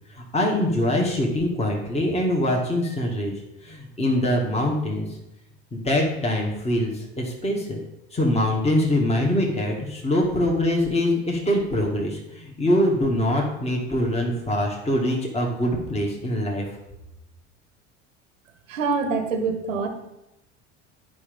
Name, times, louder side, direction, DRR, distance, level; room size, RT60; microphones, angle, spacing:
voice 1, 0.3-3.3 3.6-5.1 5.7-7.8 8.1-16.6, left 1 dB, 15° left, 0 dB, 2.0 m, -23 dB
voice 2, 18.7-19.9, right 4 dB, 90° right, 7 dB, 1.2 m, -25 dB
9.6 x 5.2 x 5.3 m, 0.88 s
hypercardioid pair, 80°, 38 cm